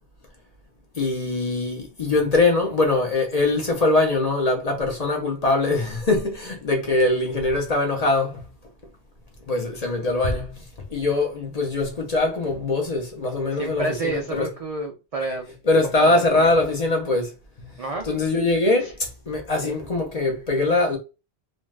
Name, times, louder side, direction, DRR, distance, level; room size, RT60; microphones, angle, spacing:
voice 1, 1.0-8.4 9.5-10.5 10.9-14.4 15.7-17.3 18.1-21.0, left 2 dB, 40° left, 0.7 m, -22 dB
voice 2, 13.5-15.5 16.0-16.7 17.8-18.0 18.8-18.9 19.6-19.8, right 2 dB, 60° right, 0.4 m, -29 dB
2.5 x 2.3 x 3.2 m
omnidirectional pair, 1.1 m